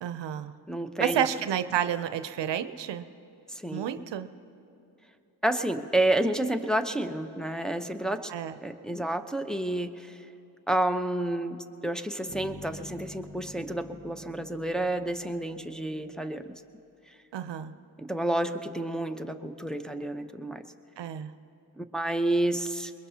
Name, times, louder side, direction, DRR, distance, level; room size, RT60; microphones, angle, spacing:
voice 1, 0.0-0.5 1.0-3.1 3.7-4.3 8.3-8.6 17.3-17.7 21.0-21.3, right 9 dB, 85° right, 11 dB, 0.6 m, -30 dB
voice 2, 0.7-1.3 3.5-4.1 5.4-8.3 8.6-10.2 10.7-16.6 18.0-20.6 21.8-22.9, right 1 dB, ahead, 5 dB, 0.8 m, -30 dB
sound 1, 12.3-16.3, left 1 dB, 85° left, 4.8 m, -47 dB
22.5 x 21.0 x 2.8 m, 2.8 s
cardioid pair, 40°, 42 cm